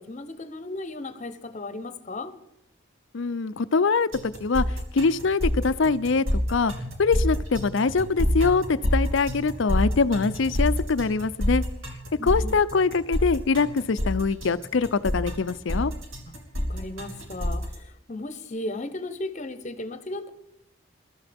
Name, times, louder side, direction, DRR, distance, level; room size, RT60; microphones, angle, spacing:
voice 1, 0.0-2.3 12.2-12.6 16.7-20.3, left 2 dB, 35° left, 0.9 m, -35 dB
voice 2, 3.1-4.6 4.9-6.7 7.0-11.6 12.2-15.9, left 4 dB, 65° left, 0.5 m, -23 dB
sound 1, 4.1-17.7, equal, 70° right, 2.8 m, -28 dB
21.5 x 12.5 x 3.5 m
head